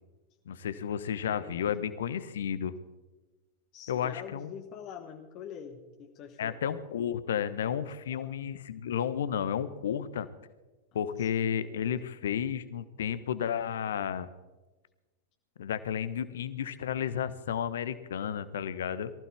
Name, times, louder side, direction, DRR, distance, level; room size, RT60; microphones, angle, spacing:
voice 1, 0.5-2.7 3.9-4.5 6.4-10.3 10.9-14.3 15.6-19.1, left 8 dB, 60° left, 14 dB, 1.0 m, -32 dB
voice 2, 1.2-1.7 3.7-6.6 8.1-8.4 10.9-11.3, left 8 dB, 40° left, 3 dB, 1.5 m, -45 dB
23.0 x 15.0 x 3.5 m, 1.2 s
figure-of-eight pair, 90°, 0 cm